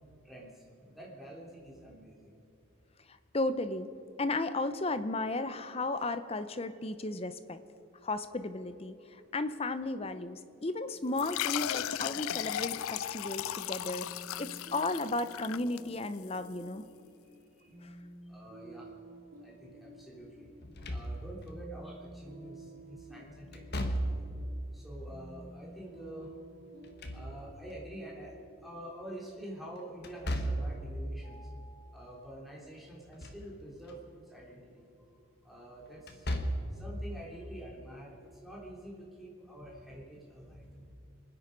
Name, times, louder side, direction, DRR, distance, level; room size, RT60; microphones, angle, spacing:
voice 1, 0.2-2.3 17.5-17.7 18.2-18.9 19.4-20.5 20.9-24.2 24.7-26.3 27.1-28.3 28.6-31.4 31.9-34.9 35.4-36.3 36.6-41.0, right 1 dB, ahead, -5 dB, 3.3 m, -47 dB
voice 2, 3.1-3.9 4.2-7.6 8.0-14.1 14.4-16.8 17.8-17.9 31.3-31.9, left 2 dB, 25° left, 11 dB, 0.6 m, -34 dB
sound 1, 11.2-16.3, left 12 dB, 75° left, 0.3 m, -36 dB
sound 2, 13.9-29.5, right 1 dB, 40° right, 3.3 m, -53 dB
Slam / Thump thud, 20.6-21.5 23.5-24.4 26.7-27.7 30.0-30.8 32.9-33.5 33.9-34.0 36.0-36.8, equal, 45° left, 1.5 m, -35 dB
26.5 x 9.8 x 5.2 m, 2.6 s
head